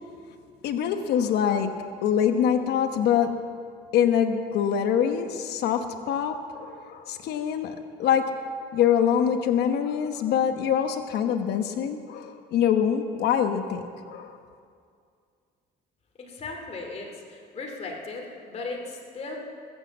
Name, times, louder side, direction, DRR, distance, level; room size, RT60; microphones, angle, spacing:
voice 1, 0.6-3.3 3.9-7.7 8.0-8.3 8.7-14.3, left 8 dB, 75° left, 7 dB, 1.0 m, -24 dB
voice 2, 16.2-19.4, left 3 dB, 40° left, 1 dB, 2.5 m, -37 dB
21.0 x 8.3 x 7.3 m, 2.3 s
cardioid pair, 110°, 17 cm